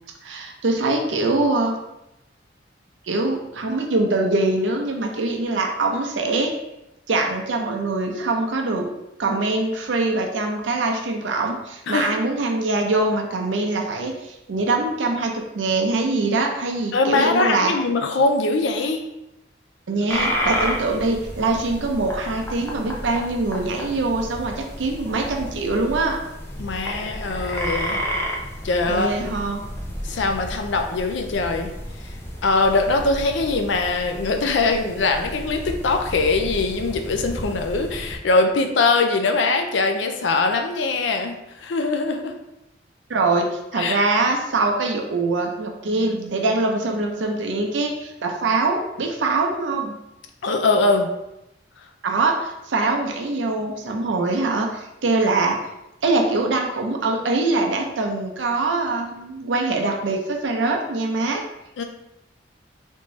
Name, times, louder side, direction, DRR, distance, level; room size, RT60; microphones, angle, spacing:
voice 1, 0.2-1.8 3.1-6.5 7.1-8.9 9.2-17.7 19.9-26.2 28.9-29.6 43.1-50.0 52.0-55.6 56.0-61.4, right 3 dB, 85° right, 2 dB, 0.6 m, -23 dB
voice 2, 16.9-19.0 26.6-28.0 28.6-29.1 30.0-31.7 32.4-42.3 43.8-44.1 50.4-51.1 61.8-61.9, left 3 dB, 80° left, 5 dB, 0.4 m, -22 dB
sound 1, 20.1-38.2, equal, 15° left, 0.4 m, -31 dB
3.5 x 2.6 x 3.1 m, 0.89 s
head